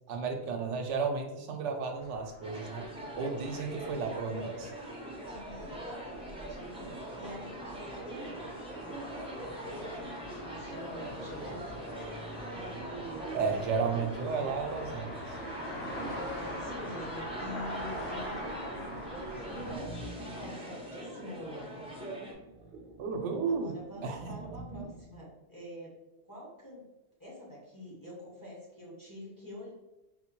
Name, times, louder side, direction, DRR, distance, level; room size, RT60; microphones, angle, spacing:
voice 1, 0.1-2.8 3.1-4.7 13.3-15.4 23.0-23.7 24.0-24.3, right 5 dB, 90° right, 4 dB, 0.9 m, -33 dB
sound 1, 2.0-19.8, equal, 75° left, 1.2 m, -44 dB
sound 2, 2.4-22.3, right 1 dB, 5° right, 0.5 m, -43 dB
voice 2, 5.2-8.6 9.7-11.6 12.4-13.6 13.8-14.1 15.5-21.9 23.4-25.9 26.2-26.9 27.2-29.7, equal, 20° left, -6 dB, 1.1 m, -46 dB
sound 3, 6.7-25.1, right 4 dB, 65° right, 0.7 m, -50 dB
4.2 x 2.2 x 2.9 m, 0.98 s
omnidirectional pair, 1.2 m